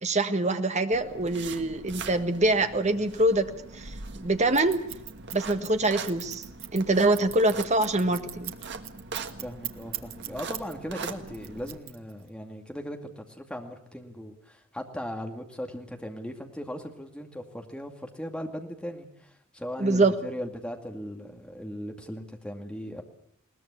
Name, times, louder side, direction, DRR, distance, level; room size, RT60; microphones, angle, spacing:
voice 1, 0.0-4.8 5.3-6.4 6.7-8.5 19.8-20.1, right 2 dB, 35° right, 8 dB, 1.5 m, -25 dB
sound 1, 0.9-11.8, right 4 dB, 60° right, 1.6 m, -41 dB
Scissors, 4.5-10.7 11.0-12.3, right 13 dB, 80° right, 1.6 m, -38 dB
voice 2, 9.4-23.0, equal, 5° left, 3 dB, 2.4 m, -38 dB
21.0 x 19.5 x 8.4 m, 0.70 s
head